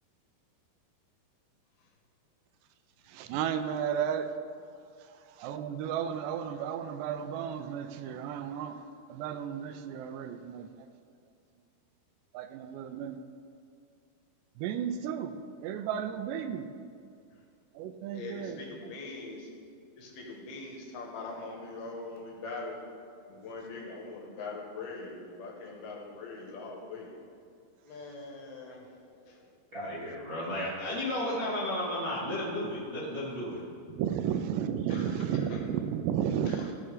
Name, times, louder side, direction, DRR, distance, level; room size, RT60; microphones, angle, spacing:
voice 1, 3.2-4.3 5.4-8.8 9.1-10.8 12.3-13.2 14.6-15.4 15.6-16.7 17.8-18.6 33.9-36.7, right 9 dB, 85° right, 9 dB, 2.7 m, -33 dB
voice 2, 18.1-19.5 20.0-22.8 23.3-27.1 27.9-29.5 34.9-35.6 36.5-36.7, left 3 dB, 70° left, -1 dB, 3.0 m, -42 dB
voice 3, 29.7-33.6 34.2-34.4, left 1 dB, 40° right, -10 dB, 1.3 m, -33 dB
16.0 x 5.4 x 5.0 m, 2.3 s
omnidirectional pair, 4.9 m